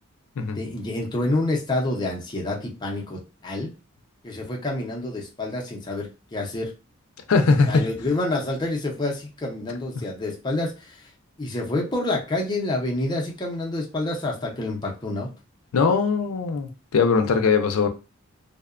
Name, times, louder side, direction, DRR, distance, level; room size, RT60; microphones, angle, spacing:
voice 1, 0.6-3.7 4.2-6.7 7.7-11.0 11.4-15.3, left 2 dB, 20° left, 0.5 m, -28 dB
voice 2, 7.3-7.9 15.7-17.9, left 4 dB, 75° left, 0.4 m, -20 dB
2.7 x 2.1 x 2.4 m
head